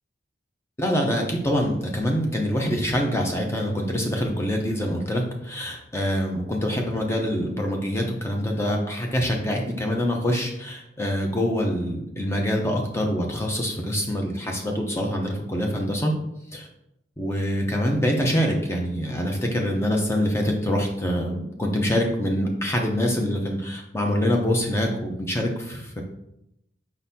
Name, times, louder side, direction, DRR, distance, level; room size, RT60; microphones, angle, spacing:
voice 1, 0.8-16.1 16.5-16.7 17.2-26.0, equal, 15° left, 1 dB, 0.6 m, -25 dB
4.9 x 3.9 x 2.8 m, 0.80 s
head